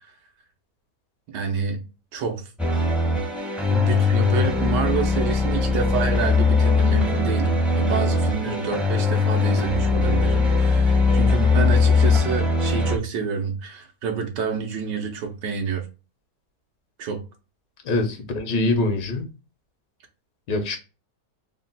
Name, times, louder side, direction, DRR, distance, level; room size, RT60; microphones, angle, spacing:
voice 1, 1.3-1.8 2.1-2.4 3.7-15.9 17.0-17.2, right 6 dB, 85° right, 1.4 m, -28 dB
sound 1, 2.6-13.0, left 3 dB, ahead, 0.3 m, -20 dB
voice 2, 17.8-19.3 20.5-20.8, left 2 dB, 85° left, 1.5 m, -24 dB
3.9 x 2.2 x 3.8 m
omnidirectional pair, 1.8 m